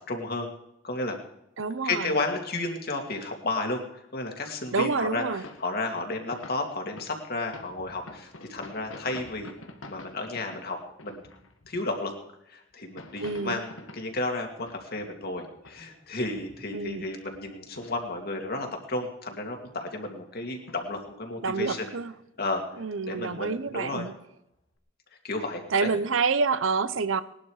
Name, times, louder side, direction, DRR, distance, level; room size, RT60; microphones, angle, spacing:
voice 1, 0.1-0.5 0.8-1.2 1.8-9.5 9.8-11.2 11.7-12.1 12.5-21.9 22.4-22.6 23.1-24.1 25.2-25.9, left 2 dB, 50° left, 2.5 m, -32 dB
voice 2, 1.6-2.1 4.7-5.4 13.2-13.6 16.7-17.1 21.4-22.1 22.8-24.1 25.7-27.2, right 4 dB, 75° right, 0.8 m, -27 dB
sound 1, 5.4-12.0 12.7-15.3 15.6-18.4 18.7-18.8 19.2-20.1 20.4-21.0 21.3-22.1 22.7-22.8 23.1-24.0 24.6-24.7, left 2 dB, 85° left, 1.7 m, -48 dB
19.0 x 11.5 x 4.9 m
head